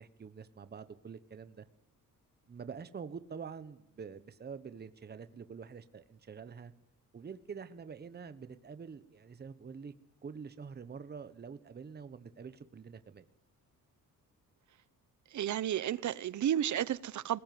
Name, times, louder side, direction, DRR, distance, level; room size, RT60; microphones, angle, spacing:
voice 1, 0.0-1.6 2.5-6.7 7.1-9.9 10.2-13.3, right 6 dB, 30° right, 1.2 m, -46 dB
voice 2, 15.3-17.4, right 11 dB, 60° right, 0.9 m, -32 dB
21.0 x 19.5 x 9.5 m
cardioid pair, 150°, 34 cm